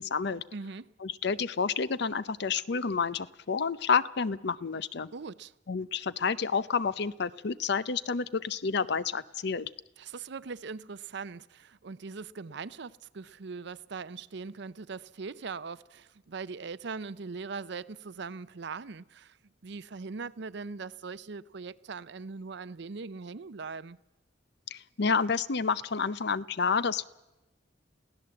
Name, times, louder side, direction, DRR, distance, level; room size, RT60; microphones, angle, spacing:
voice 1, 0.0-0.4 1.0-5.1 5.7-9.7 24.7-27.0, left 5 dB, 60° left, 0.6 m, -29 dB
voice 2, 0.5-0.9 5.1-5.5 10.0-19.4 19.6-24.0, right 4 dB, 65° right, 0.6 m, -40 dB
22.5 x 16.0 x 7.7 m
head